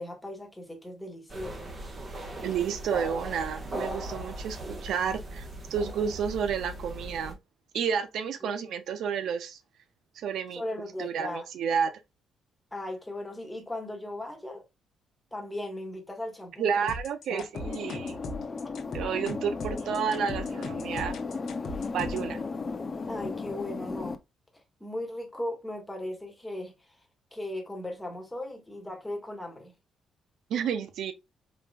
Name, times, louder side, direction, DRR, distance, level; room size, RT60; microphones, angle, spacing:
voice 1, 0.0-1.7 8.4-8.6 10.5-11.5 12.7-14.6 15.3-16.9 17.3-17.4 23.1-24.2 24.8-27.0 27.3-29.7, left 1 dB, 10° left, 1.6 m, -37 dB
sound 1, 1.3-7.3, right 1 dB, 35° right, 1.5 m, -38 dB
voice 2, 2.4-7.4 7.7-9.6 10.2-10.6 11.0-11.9 16.6-18.2 18.9-21.2 21.9-22.4 30.5-31.1, right 7 dB, 75° right, 0.6 m, -31 dB
sound 2, 16.9-22.3, left 2 dB, 65° left, 1.1 m, -39 dB
sound 3, 17.5-24.2, left 4 dB, 35° left, 0.7 m, -35 dB
5.0 x 3.4 x 2.3 m
cardioid pair, 90°, 0 cm